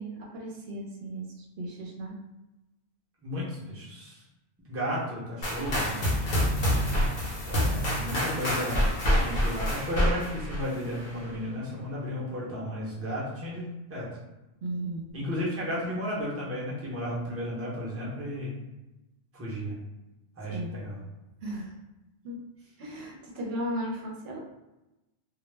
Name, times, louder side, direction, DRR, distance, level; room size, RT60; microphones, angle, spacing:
voice 1, 0.0-2.2 14.6-15.1 20.5-20.8 21.4-21.7 22.2-22.4 22.8-24.4, right 1 dB, 75° right, -1 dB, 0.8 m, -36 dB
voice 2, 3.2-4.2 4.7-6.0 7.4-14.1 15.1-18.5 19.3-19.7 20.4-21.0, equal, 15° right, -6 dB, 0.6 m, -33 dB
sound 1, 5.4-11.3, equal, 55° left, 0.8 m, -27 dB
2.2 x 2.0 x 3.2 m, 0.99 s
omnidirectional pair, 1.1 m